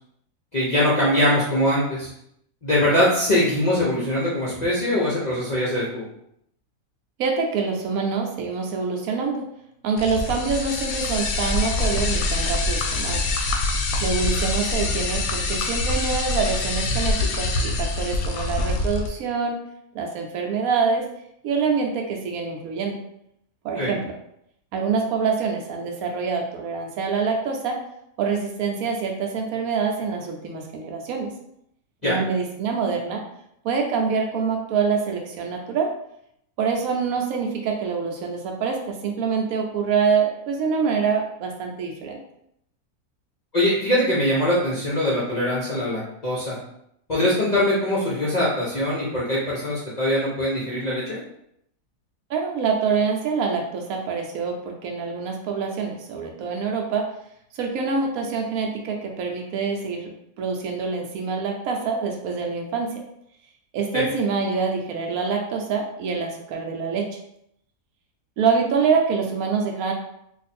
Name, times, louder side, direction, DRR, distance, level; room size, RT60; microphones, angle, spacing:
voice 1, 0.5-2.1 2.6-6.0 23.8-23.9 32.0-32.2 43.5-46.6 47.1-51.2 63.9-64.1, left 1 dB, 45° left, -7 dB, 0.5 m, -22 dB
voice 2, 7.2-9.4 9.8-13.2 14.0-19.6 19.9-21.1 21.4-23.0 23.6-24.0 24.7-27.8 28.2-31.3 32.0-33.2 33.6-35.9 36.6-42.2 52.3-57.1 57.5-60.1 60.4-63.0 63.7-67.1 68.4-69.9, right 5 dB, 70° right, 2 dB, 1.0 m, -25 dB
sound 1, 10.0-19.1, left 2 dB, 75° left, 1.0 m, -25 dB
2.5 x 2.5 x 4.1 m, 0.75 s
omnidirectional pair, 1.6 m